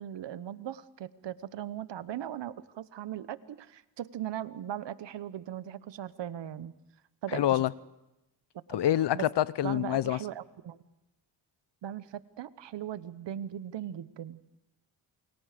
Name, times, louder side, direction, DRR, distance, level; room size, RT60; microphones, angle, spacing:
voice 1, 0.0-6.7 7.2-7.6 8.7-8.8 9.1-9.2 9.6-10.8 11.8-14.4, right 11 dB, 75° right, 1.1 m, -39 dB
voice 2, 7.3-7.7 8.7-10.2, left 12 dB, 70° left, 0.8 m, -26 dB
28.5 x 23.5 x 5.1 m
cardioid pair, 75°, 44 cm